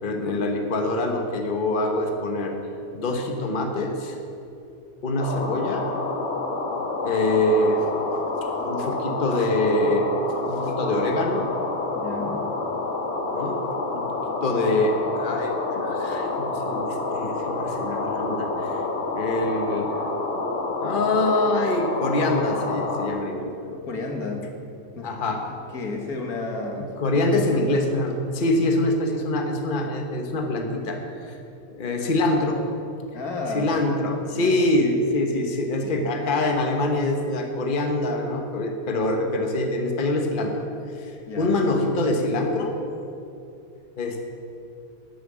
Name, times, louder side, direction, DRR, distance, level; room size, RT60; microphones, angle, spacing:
voice 1, 0.0-2.6 2.9-4.2 5.0-5.9 7.0-7.9 8.6-10.1 10.5-11.5 13.3-13.6 13.9-14.1 14.4-18.8 19.1-19.9 20.8-23.8 25.0-25.4 26.8-31.4 31.7-32.6 33.5-40.6 41.0-42.8 44.0-44.2, left 2 dB, 35° left, 3 dB, 1.3 m, -25 dB
sound 1, 5.2-23.1, left 3 dB, 55° left, 1.7 m, -28 dB
voice 2, 11.9-12.4 23.9-24.4 25.0-25.1 25.5-27.7 33.1-33.7 34.2-34.6 35.8-36.0 41.3-41.7, left 3 dB, 85° left, 2 dB, 2.1 m, -32 dB
12.0 x 9.4 x 7.6 m, 2.6 s
omnidirectional pair, 1.5 m